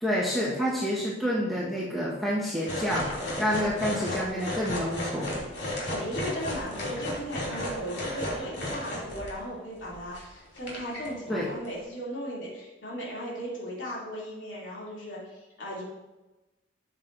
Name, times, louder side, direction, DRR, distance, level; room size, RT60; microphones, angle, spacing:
voice 1, 0.0-3.1 3.4-5.4 11.3-11.5, equal, ahead, -8 dB, 1.5 m, -28 dB
sound 1, 2.7-9.3 9.8-10.3 10.6-11.1 11.7-11.8, left 1 dB, 65° left, 2.9 m, -34 dB
voice 2, 5.5-15.8, equal, 80° left, -6 dB, 3.0 m, -37 dB
12.5 x 7.5 x 2.7 m, 1.1 s
head